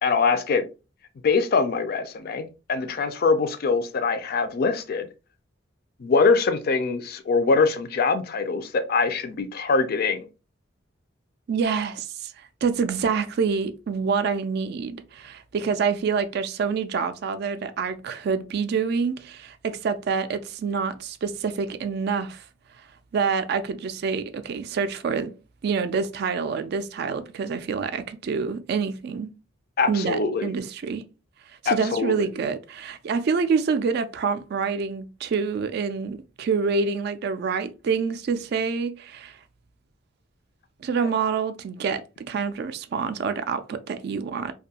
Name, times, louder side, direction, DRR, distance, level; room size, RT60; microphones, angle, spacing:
voice 1, 0.0-0.6 1.2-5.1 6.0-10.3 29.8-30.5 31.7-32.3 41.0-41.1, left 4 dB, 50° left, 0.4 m, -23 dB
voice 2, 11.5-12.3 12.6-22.4 23.1-25.3 25.6-29.3 29.9-31.0 31.6-39.4 40.8-44.5, right 5 dB, 55° right, 0.3 m, -27 dB
2.5 x 2.3 x 2.7 m
head